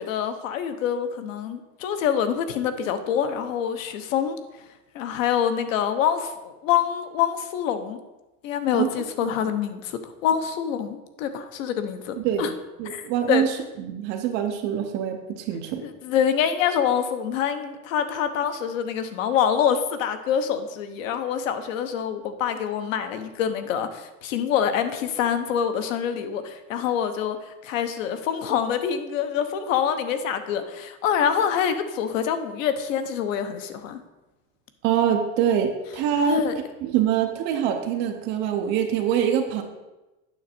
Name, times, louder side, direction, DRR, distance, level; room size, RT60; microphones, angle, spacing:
voice 1, 0.0-4.4 4.9-8.0 8.4-12.5 12.8-13.5 15.8-34.0 36.3-36.5, left 8 dB, 70° left, 9 dB, 1.0 m, -26 dB
voice 2, 12.8-13.5 13.8-15.8 34.8-36.4 36.8-39.6, right 9 dB, 25° right, 4 dB, 0.5 m, -24 dB
9.2 x 6.3 x 4.3 m, 1.0 s
supercardioid pair, 180°, 40 cm